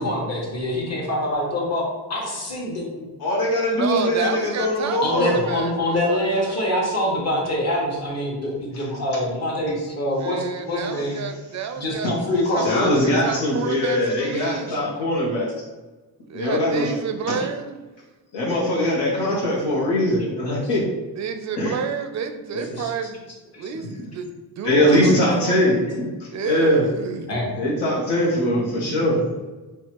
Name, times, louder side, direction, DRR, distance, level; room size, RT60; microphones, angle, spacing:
voice 1, 0.0-3.1 3.9-4.1 5.0-11.2 11.8-13.0 14.7-14.8 20.5-20.7 22.8-22.9 23.5-23.7 27.3-27.5, left 1 dB, 40° left, -4 dB, 1.3 m, -25 dB
voice 2, 3.2-5.3 12.6-15.5 16.3-16.9 17.3-17.4 18.3-20.8 21.5-21.7 22.5-22.7 24.6-26.1 26.4-26.8 27.6-29.2, left 1 dB, 90° left, -5 dB, 0.9 m, -21 dB
voice 3, 3.7-6.6 10.2-12.1 12.5-14.9 16.3-17.9 19.5-19.7 21.1-25.6 26.3-27.3, right 6 dB, 45° right, 8 dB, 0.4 m, -30 dB
4.5 x 2.3 x 2.9 m, 1.2 s
cardioid pair, 100°, 40 cm